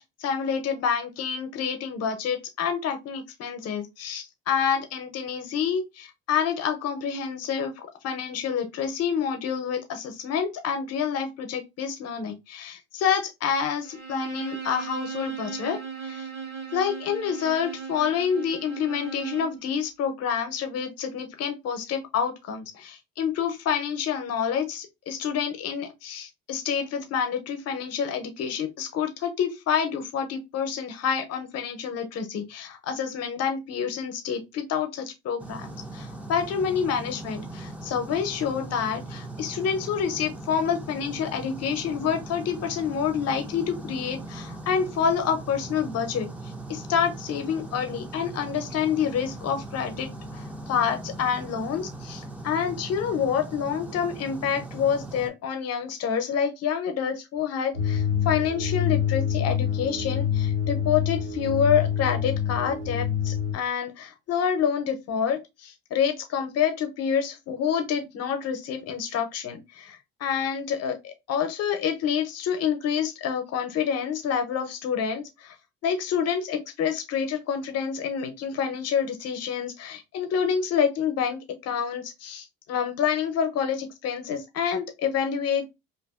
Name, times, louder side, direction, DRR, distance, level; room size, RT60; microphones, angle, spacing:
voice 1, 0.0-16.3 16.7-75.6 75.8-85.6, left 7 dB, 55° left, 0.8 m, -28 dB
Bowed string instrument, 13.8-19.6, right 6 dB, 60° right, 1.3 m, -38 dB
sound 1, 35.4-55.3, right 2 dB, 5° right, 0.5 m, -39 dB
sound 2, 57.7-63.5, left 8 dB, 80° right, 1.2 m, -26 dB
2.6 x 2.6 x 2.3 m
hypercardioid pair, 70°, 29 cm